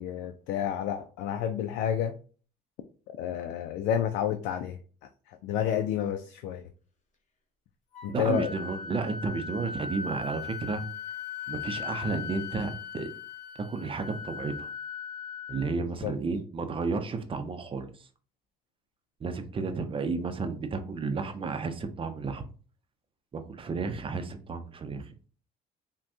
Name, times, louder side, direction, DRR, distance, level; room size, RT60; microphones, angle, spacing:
voice 1, 0.0-2.2 3.1-4.8 5.3-6.6 8.0-8.5 16.0-16.1, left 9 dB, 90° left, 7 dB, 0.4 m, -30 dB
Wind instrument woodwind instrument, 7.9-15.7, left 6 dB, 45° left, 1.0 m, -39 dB
voice 2, 8.1-10.8 11.5-13.1 13.6-14.7 15.5-17.9 19.2-22.4 23.3-25.1, right 4 dB, 30° right, 8 dB, 0.6 m, -32 dB
5.9 x 2.2 x 2.7 m, 0.40 s
cardioid pair, 110°, 17 cm